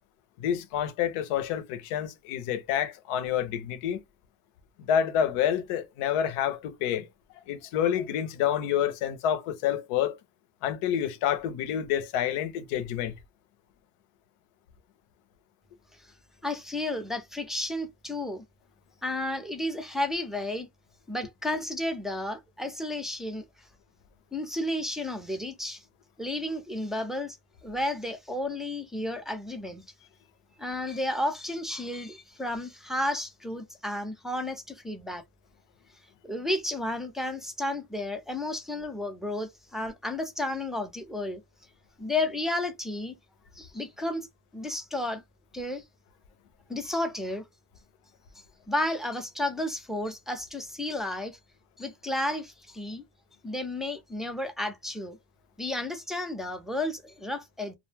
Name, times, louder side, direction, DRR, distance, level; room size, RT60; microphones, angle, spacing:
voice 1, 0.4-4.0 4.8-7.1 7.5-10.2 10.6-13.1, left 9 dB, 90° left, 0.7 m, -28 dB
voice 2, 16.4-18.4 19.0-20.7 21.1-23.5 24.3-25.8 26.2-27.4 27.6-29.8 30.6-35.2 36.2-41.4 42.0-43.2 43.5-44.3 44.5-45.2 45.5-45.8 46.7-47.4 48.7-51.4 51.8-53.0 53.4-55.2 55.6-57.8, left 1 dB, ahead, 0.4 m, -32 dB
2.2 x 2.0 x 3.2 m
cardioid pair, 90°, 49 cm